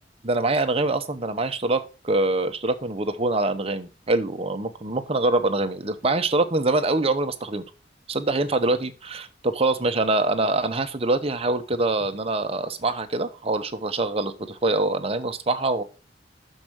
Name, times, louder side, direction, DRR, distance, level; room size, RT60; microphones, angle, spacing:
voice 1, 0.2-7.6 8.1-15.8, right 2 dB, 35° right, 8 dB, 0.9 m, -24 dB
6.4 x 5.2 x 6.1 m, 0.33 s
head